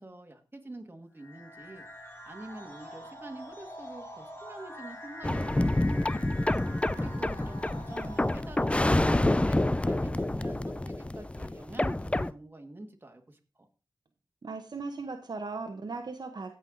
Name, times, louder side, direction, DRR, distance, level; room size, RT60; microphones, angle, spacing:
voice 1, 0.0-6.3 6.9-13.7, right 2 dB, 30° right, 4 dB, 1.9 m, -46 dB
sound 1, 1.2-8.8, equal, 30° left, 2.5 m, -46 dB
sound 2, 5.2-12.3, left 1 dB, 15° left, 0.5 m, -28 dB
voice 2, 14.4-16.5, right 3 dB, 65° right, 5 dB, 1.0 m, -37 dB
16.5 x 5.6 x 3.9 m, 0.34 s
wide cardioid pair, 60°, 8 cm